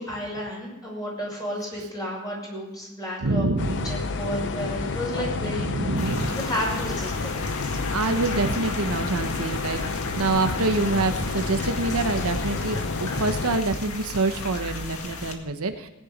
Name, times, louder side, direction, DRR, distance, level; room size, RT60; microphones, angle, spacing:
voice 1, 0.0-7.5, equal, 20° left, -3 dB, 6.5 m, -32 dB
voice 2, 3.2-4.0 5.4-6.3 7.9-15.9, right 2 dB, 80° right, 7 dB, 1.0 m, -26 dB
sound 1, 3.6-13.6, left 4 dB, 55° left, 0.6 m, -30 dB
sound 2, 6.0-15.3, left 3 dB, 75° left, 1.9 m, -35 dB
18.5 x 10.0 x 5.3 m, 1.0 s
head